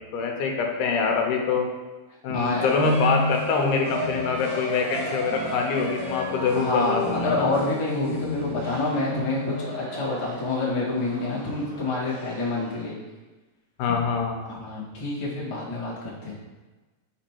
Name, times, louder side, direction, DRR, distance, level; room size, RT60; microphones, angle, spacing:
voice 1, 0.0-1.7 2.2-7.5 13.8-14.4, left 5 dB, 85° left, 2 dB, 2.3 m, -25 dB
voice 2, 2.3-2.8 5.0-5.4 6.5-12.9 14.5-16.3, left 2 dB, 25° left, -7 dB, 0.6 m, -28 dB
sound 1, 2.6-12.8, equal, 55° right, 2.5 m, -31 dB
5.2 x 5.1 x 4.5 m, 1.2 s
omnidirectional pair, 3.6 m